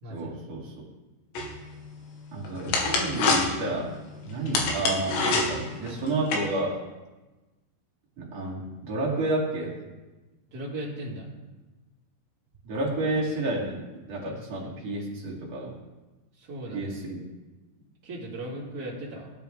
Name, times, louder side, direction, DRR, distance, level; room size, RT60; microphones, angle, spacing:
voice 1, 0.1-0.7 2.3-3.9 4.2-6.8 8.2-9.8 12.6-13.8 14.1-15.7 16.7-17.2, right 2 dB, 40° right, -5 dB, 3.2 m, -30 dB
sound 1, 1.4-6.4, left 3 dB, 85° left, 3.8 m, -28 dB
voice 2, 10.5-11.3 16.4-16.9 18.0-19.3, right 1 dB, 25° right, -6 dB, 2.5 m, -37 dB
17.0 x 9.6 x 3.6 m, 1.2 s
omnidirectional pair, 5.0 m